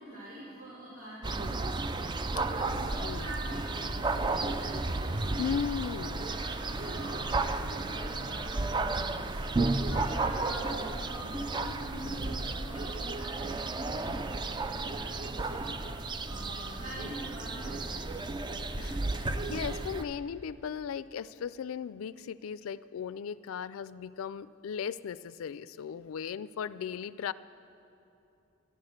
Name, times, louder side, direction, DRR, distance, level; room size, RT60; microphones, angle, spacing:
voice 1, 0.0-5.5 6.2-9.4 9.8-18.1, equal, 90° right, -10 dB, 3.1 m, -44 dB
sound 1, 1.2-20.0, right 3 dB, 20° right, 0.4 m, -33 dB
voice 2, 2.7-3.3 5.4-6.3 18.8-27.3, left 7 dB, 80° left, 17 dB, 0.3 m, -37 dB
12.5 x 11.0 x 6.4 m, 2.8 s
head